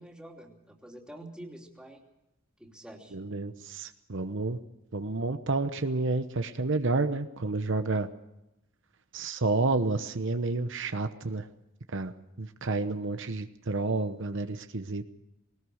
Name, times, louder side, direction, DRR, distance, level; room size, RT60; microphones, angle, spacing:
voice 1, 0.0-2.0 2.6-3.1, right 1 dB, 5° right, 1 dB, 3.0 m, -47 dB
voice 2, 3.1-4.6 4.9-8.1 9.1-11.5 11.9-12.1 12.4-15.0, right 3 dB, 60° right, 9 dB, 1.0 m, -30 dB
20.5 x 19.5 x 6.5 m, 0.91 s
head